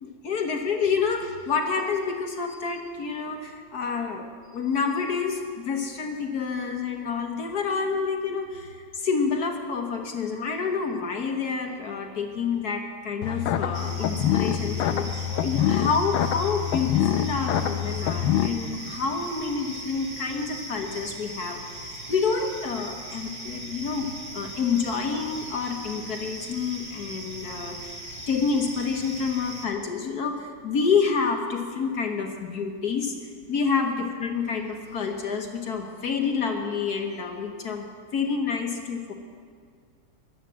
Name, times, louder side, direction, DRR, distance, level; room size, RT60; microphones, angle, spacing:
voice 1, 0.0-24.1 24.3-28.0 28.3-37.9 38.1-39.1, left 5 dB, 55° left, 4 dB, 1.6 m, -28 dB
sound 1, 13.2-18.5, left 10 dB, 90° left, 1.5 m, -25 dB
sound 2, 13.7-29.7, right 1 dB, 20° right, 2.1 m, -39 dB
16.0 x 11.5 x 7.5 m, 2.1 s
omnidirectional pair, 2.1 m